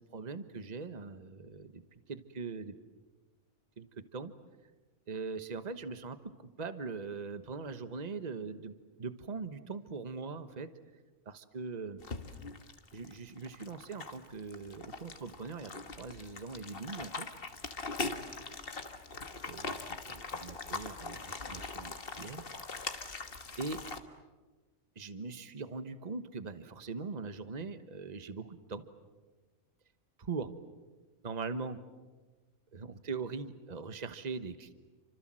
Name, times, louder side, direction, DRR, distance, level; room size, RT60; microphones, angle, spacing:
voice 1, 0.1-1.8 2.1-2.8 3.8-4.3 5.1-6.3 6.6-8.7 9.0-10.7 11.2-12.0 12.9-17.3 19.4-22.4 23.6-23.8 25.0-28.8 30.2-30.5 31.2-31.8 32.7-34.7, right 4 dB, 30° right, 11 dB, 1.2 m, -41 dB
sound 1, 12.0-24.0, left 3 dB, 45° left, 1.7 m, -41 dB
29.5 x 26.0 x 7.6 m, 1.3 s
omnidirectional pair, 1.4 m